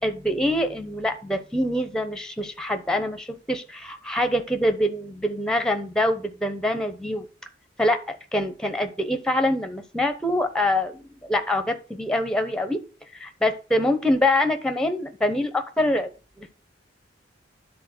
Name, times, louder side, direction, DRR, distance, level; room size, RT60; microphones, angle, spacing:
voice 1, 0.0-7.3 7.8-12.8 13.2-16.1 16.4-16.5, left 1 dB, 5° left, 8 dB, 0.8 m, -25 dB
10.0 x 4.2 x 6.6 m, 0.34 s
head